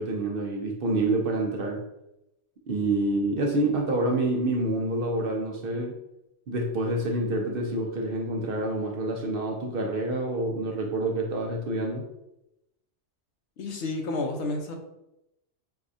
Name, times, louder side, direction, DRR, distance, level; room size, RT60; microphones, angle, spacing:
voice 1, 0.0-1.8 2.7-5.9 6.5-12.1, right 2 dB, 60° right, 1 dB, 0.7 m, -27 dB
voice 2, 13.6-14.7, left 2 dB, 70° left, 2 dB, 0.9 m, -30 dB
4.7 x 2.3 x 2.5 m, 0.86 s
omnidirectional pair, 1.2 m